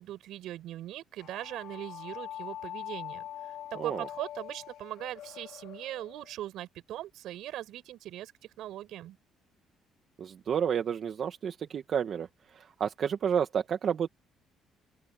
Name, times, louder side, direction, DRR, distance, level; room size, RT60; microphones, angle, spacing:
voice 1, 0.0-3.3 3.8-8.3 8.6-9.2, right 13 dB, 75° right, 7.9 m, -40 dB
sound 1, 1.2-6.3, left 11 dB, 75° left, 3.2 m, -43 dB
voice 2, 10.2-14.1, right 8 dB, 50° right, 1.6 m, -31 dB
open air
cardioid pair, 115°, 0 cm